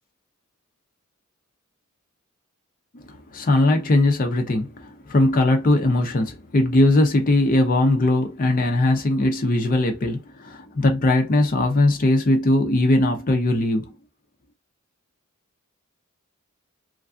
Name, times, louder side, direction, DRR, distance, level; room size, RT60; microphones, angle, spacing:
voice 1, 2.9-13.9, left 2 dB, 40° left, 0.5 m, -20 dB
3.2 x 2.5 x 2.3 m
head